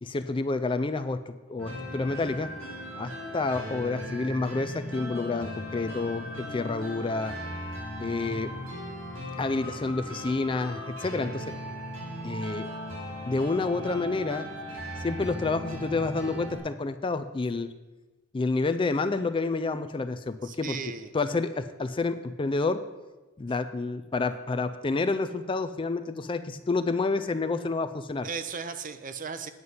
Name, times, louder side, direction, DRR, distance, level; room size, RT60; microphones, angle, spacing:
voice 1, 0.0-2.5 3.0-7.3 8.0-8.5 9.4-11.5 12.2-12.7 13.3-14.5 15.0-17.7 18.3-20.8 21.1-22.8 23.4-28.3, left 3 dB, 25° left, 11 dB, 0.4 m, -29 dB
sound 1, 1.6-16.6, equal, 85° right, 4.0 m, -38 dB
voice 2, 20.4-21.1 28.2-29.5, right 5 dB, 40° right, 11 dB, 0.6 m, -36 dB
9.5 x 5.5 x 8.0 m, 1.2 s
head